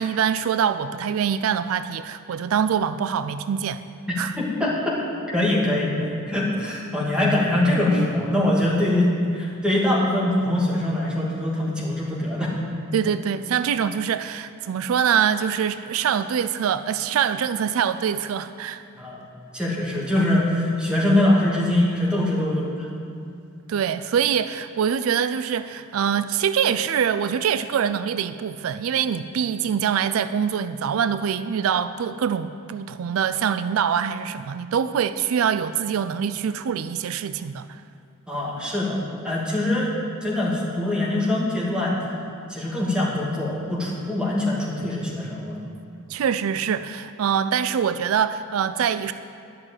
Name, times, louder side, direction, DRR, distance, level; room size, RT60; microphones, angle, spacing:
voice 1, 0.0-3.8 4.2-4.3 12.9-18.8 23.7-37.8 46.1-49.1, right 8 dB, 80° right, 12 dB, 0.4 m, -24 dB
voice 2, 4.4-5.0 5.3-12.5 18.9-19.2 19.5-22.9 38.3-39.9 40.2-42.0 42.5-45.6, left 1 dB, 5° right, -5 dB, 2.2 m, -23 dB
11.0 x 6.3 x 8.9 m, 2.5 s
head